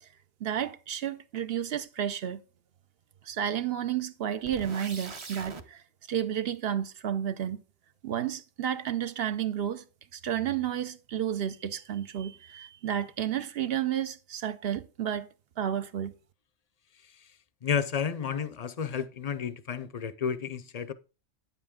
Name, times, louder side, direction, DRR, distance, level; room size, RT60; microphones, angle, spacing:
voice 1, 0.4-2.4 3.2-7.6 8.0-9.8 10.1-15.3 15.6-16.1, right 10 dB, 65° right, 0.8 m, -31 dB
sound 1, 4.4-5.6, right 4 dB, 30° right, 0.6 m, -42 dB
voice 2, 17.6-20.9, left 7 dB, 45° left, 0.6 m, -31 dB
9.5 x 7.2 x 3.6 m
omnidirectional pair, 1.2 m